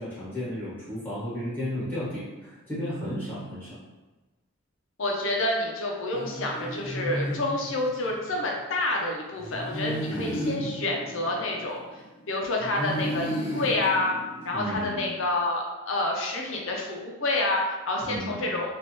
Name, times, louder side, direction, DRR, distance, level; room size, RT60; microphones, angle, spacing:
voice 1, 0.0-3.8 10.0-10.5 14.5-15.0 18.0-18.5, equal, 10° left, -10 dB, 1.2 m, -34 dB
voice 2, 5.0-12.0 12.3-14.2 14.4-18.7, left 2 dB, 65° left, 0 dB, 0.6 m, -28 dB
sound 1, 6.1-8.2 9.4-12.1 12.6-14.8, equal, 25° left, 0.7 m, -33 dB
3.3 x 2.5 x 2.9 m, 1.1 s
head